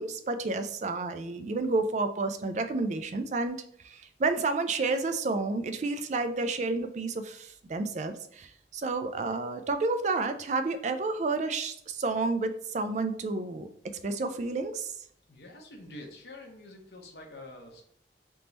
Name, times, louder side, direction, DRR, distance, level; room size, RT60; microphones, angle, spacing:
voice 1, 0.0-3.6 3.8-14.9, right 3 dB, 40° right, 9 dB, 0.3 m, -30 dB
voice 2, 15.3-17.8, left 1 dB, 65° left, 1 dB, 0.8 m, -46 dB
3.5 x 2.9 x 4.0 m, 0.66 s
head